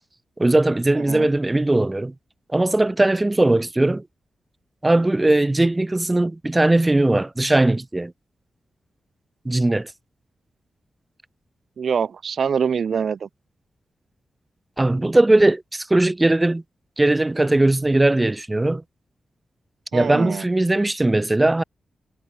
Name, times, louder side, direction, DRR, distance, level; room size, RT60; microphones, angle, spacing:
voice 1, 0.4-2.1 2.5-4.0 4.8-8.1 9.4-9.9 14.8-16.6 17.0-18.8 19.9-21.6, right 2 dB, 20° right, 2.6 m, -19 dB
voice 2, 0.9-1.3 11.8-13.3 19.9-20.5, right 6 dB, 70° right, 4.9 m, -24 dB
cardioid pair, 75°, 0 cm